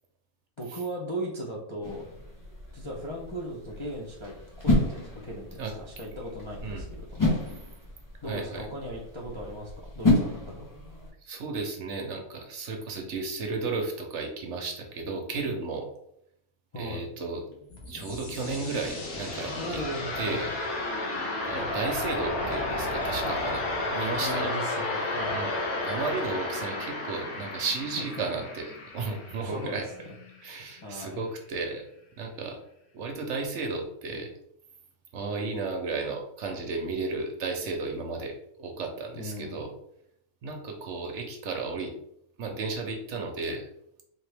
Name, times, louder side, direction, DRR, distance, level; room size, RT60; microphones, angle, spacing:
voice 1, 0.6-2.0 2.7-7.4 8.2-10.7 16.7-17.0 19.6-20.4 23.2-23.6 24.2-25.4 29.4-29.8 30.8-31.2 39.1-39.6, equal, 35° left, -4 dB, 0.4 m, -37 dB
sound 1, 1.8-11.1, left 2 dB, 15° left, 1.0 m, -31 dB
voice 2, 8.3-8.7 11.3-15.9 16.8-17.4 17.9-19.8 20.2-20.5 21.5-23.6 23.9-24.5 25.3-25.6 25.8-29.9 30.4-31.8 32.2-32.6 32.9-34.3 35.1-39.7 40.4-41.9 42.4-43.7, right 3 dB, 65° right, 3 dB, 0.9 m, -33 dB
sound 2, 17.5-30.4, left 2 dB, 80° left, 1.5 m, -32 dB
3.9 x 2.9 x 3.3 m, 0.74 s
omnidirectional pair, 1.5 m